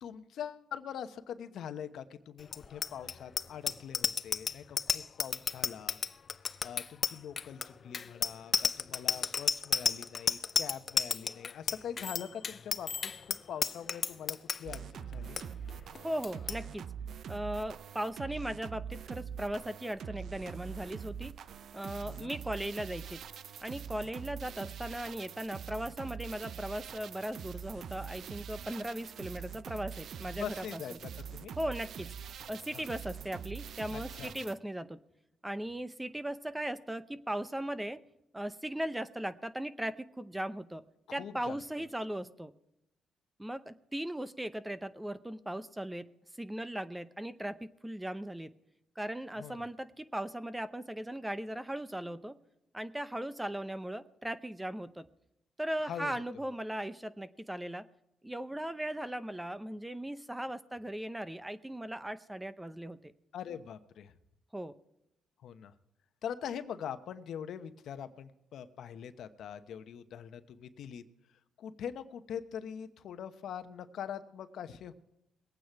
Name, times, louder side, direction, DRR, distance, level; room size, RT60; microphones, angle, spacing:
voice 1, 0.0-6.0 6.6-15.4 22.1-22.3 30.3-31.6 32.7-32.9 33.9-34.5 41.1-41.9 49.4-49.6 55.8-56.2 63.3-64.1 65.4-65.7 66.2-71.0 71.6-74.9, left 8 dB, 70° left, 10 dB, 0.9 m, -43 dB
Bicycle bell, 2.5-14.8 15.1-15.4 15.7-16.6, left 6 dB, 40° left, 0.5 m, -32 dB
sound 1, 14.6-34.5, right 7 dB, 65° right, 0.5 m, -44 dB
voice 2, 16.0-16.9 17.3-21.3 21.7-23.2 23.6-30.8 31.6-32.2 32.5-35.0 35.4-38.0 38.3-40.8 41.1-42.5 43.4-46.0 46.4-48.5 49.0-52.4 52.7-55.1 55.6-57.8 58.2-63.1 64.5-64.7, right 1 dB, 10° right, 13 dB, 0.7 m, -38 dB
21.0 x 9.0 x 4.7 m, 0.84 s
cardioid pair, 90°, 0 cm